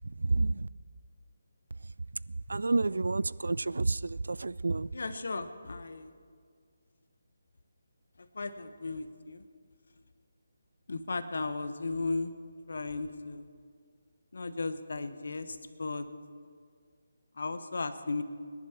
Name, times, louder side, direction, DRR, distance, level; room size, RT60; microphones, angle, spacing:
voice 1, 2.5-4.0 4.3-4.9, right 3 dB, 65° right, 0.3 m, -28 dB
voice 2, 4.9-6.1 8.4-9.4 10.9-12.3 12.7-13.4 14.3-15.5 15.8-16.0 17.4-18.2, left 3 dB, 60° left, 1.0 m, -35 dB
25.0 x 11.0 x 4.4 m
figure-of-eight pair, 150°, 0 cm